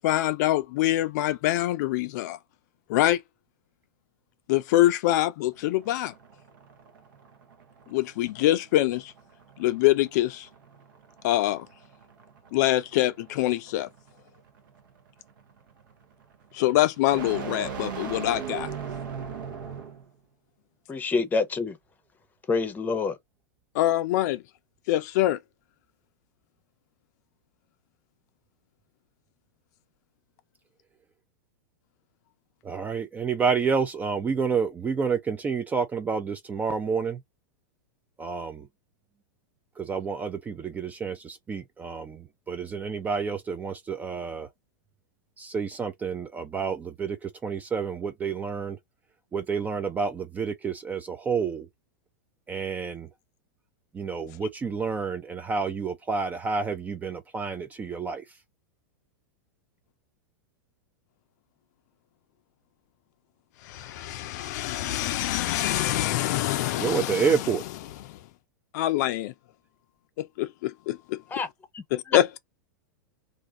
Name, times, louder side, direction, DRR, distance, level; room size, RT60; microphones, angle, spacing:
voice 1, 0.0-2.4 2.9-3.2 4.5-6.1 7.9-9.1 9.6-10.5 11.2-11.7 12.5-13.9 16.5-18.7 23.7-24.4 24.9-25.4 63.6-67.3 68.1-68.2 68.7-69.3 70.2-71.2 71.9-72.4, left 15 dB, 55° left, 0.4 m, -25 dB
sound 1, 5.5-20.1, right 6 dB, 75° right, 0.9 m, -40 dB
voice 2, 20.9-21.8 22.5-23.2 71.3-71.5 71.7-71.8 72.1-72.2, left 4 dB, 15° left, 0.7 m, -26 dB
voice 3, 32.6-37.2 38.2-38.7 39.8-44.5 45.4-48.8 49.3-51.7 52.5-53.1 53.9-58.2 66.8-67.6, right 5 dB, 15° right, 0.4 m, -29 dB
2.5 x 2.4 x 3.5 m
hypercardioid pair, 130°, 11 cm